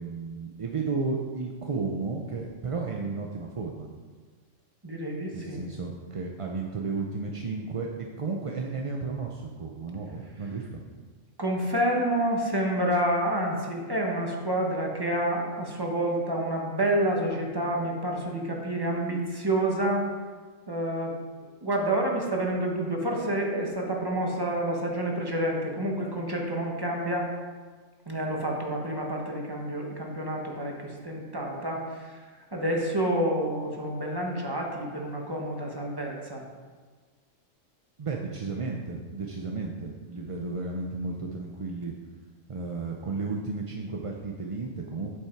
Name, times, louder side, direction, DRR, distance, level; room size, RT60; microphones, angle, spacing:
voice 1, 0.0-3.9 5.3-10.8 38.0-41.9 42.5-45.2, right 4 dB, 40° right, 0 dB, 0.5 m, -33 dB
voice 2, 4.8-5.6 11.4-20.1 20.7-21.1 21.6-27.3 28.1-36.4, right 1 dB, 20° right, -1 dB, 1.3 m, -28 dB
8.4 x 7.2 x 4.6 m, 1.5 s
omnidirectional pair, 1.3 m